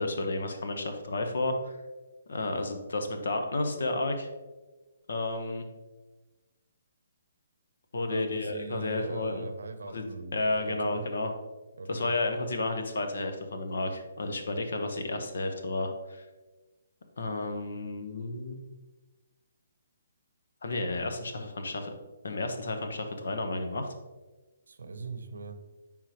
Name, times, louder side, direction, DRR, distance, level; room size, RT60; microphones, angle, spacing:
voice 1, 0.0-1.8 2.3-4.3 5.1-5.7 7.9-9.5 9.8-10.0 10.3-11.3 11.9-16.2 17.2-18.6 20.6-21.9 22.2-23.9, left 2 dB, 75° left, 5 dB, 1.0 m, -32 dB
voice 2, 7.9-11.0 11.8-12.2 24.7-25.6, right 3 dB, 85° right, 9 dB, 0.7 m, -41 dB
9.4 x 3.7 x 3.0 m, 1.2 s
hypercardioid pair, 155°, 0 cm